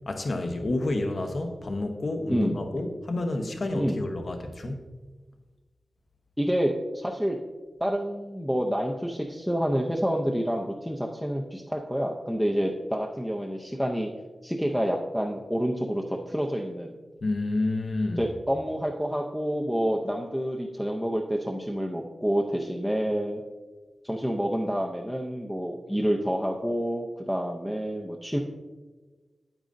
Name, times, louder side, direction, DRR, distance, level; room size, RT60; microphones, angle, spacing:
voice 1, 0.1-4.9 17.2-18.2, left 2 dB, 50° left, 4 dB, 0.9 m, -29 dB
voice 2, 2.3-2.7 3.7-4.0 6.4-7.4 7.8-14.1 14.4-17.0 18.2-23.4 24.0-28.4, equal, ahead, 0 dB, 0.5 m, -28 dB
9.5 x 8.9 x 2.6 m, 1.3 s
wide cardioid pair, 140°, 0 cm